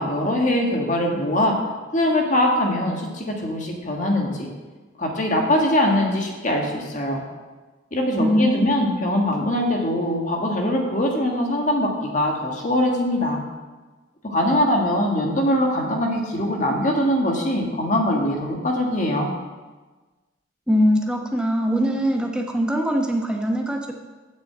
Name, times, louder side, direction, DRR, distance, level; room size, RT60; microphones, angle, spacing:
voice 1, 0.0-1.5 1.9-4.5 5.0-7.2 7.9-13.4 14.2-19.3, left 1 dB, 40° left, 1 dB, 1.5 m, -22 dB
voice 2, 8.2-8.8 20.7-23.9, equal, 5° right, 2 dB, 0.9 m, -21 dB
7.1 x 6.3 x 7.7 m, 1.3 s
head